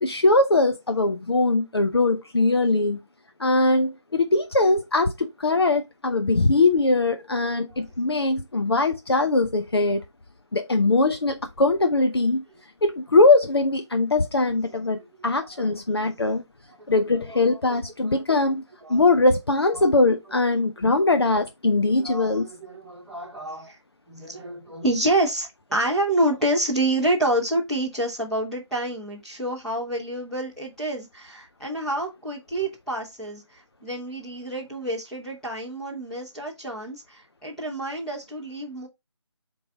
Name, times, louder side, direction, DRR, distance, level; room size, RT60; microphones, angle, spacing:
voice 1, 0.0-3.0 3.4-10.0 10.5-12.4 12.8-16.4 16.9-18.6 18.9-22.5, left 2 dB, 55° left, 0.8 m, -21 dB
voice 2, 17.6-18.1 18.8-19.0 19.7-19.9 21.1-21.2 22.0-23.8 24.1-38.9, right 1 dB, ahead, 0.9 m, -28 dB
7.6 x 3.9 x 3.5 m
figure-of-eight pair, 160°, 15 cm